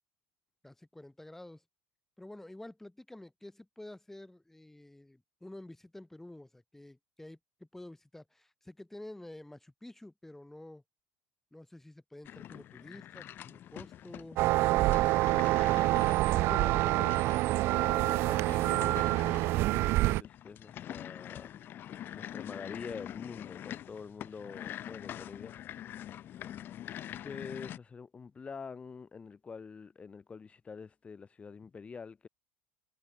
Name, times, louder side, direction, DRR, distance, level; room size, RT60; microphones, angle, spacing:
voice 1, 0.6-1.6 2.2-10.8 11.5-15.1, left 1 dB, 5° left, 6.8 m, -50 dB
sound 1, 12.2-27.8, left 11 dB, 45° left, 6.1 m, -45 dB
sound 2, 14.4-20.2, right 18 dB, 55° right, 0.8 m, -27 dB
voice 2, 16.4-17.4 17.7-25.5 27.2-32.3, left 5 dB, 25° left, 5.9 m, -46 dB
hypercardioid pair, 75°, 5 cm